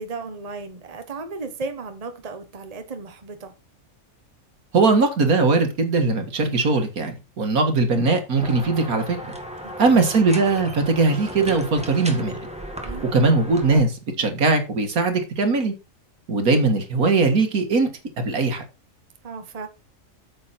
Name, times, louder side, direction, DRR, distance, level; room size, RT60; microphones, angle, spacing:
voice 1, 0.0-3.6 9.6-10.0 12.8-13.1 19.2-19.7, right 4 dB, 30° right, 1.2 m, -35 dB
voice 2, 4.7-9.2 9.8-12.3 13.1-15.7 16.3-17.9 18.2-18.6, right 3 dB, 80° right, 2.2 m, -20 dB
sound 1, 8.4-13.8, equal, 5° right, 1.6 m, -35 dB
8.8 x 7.1 x 4.3 m
omnidirectional pair, 1.5 m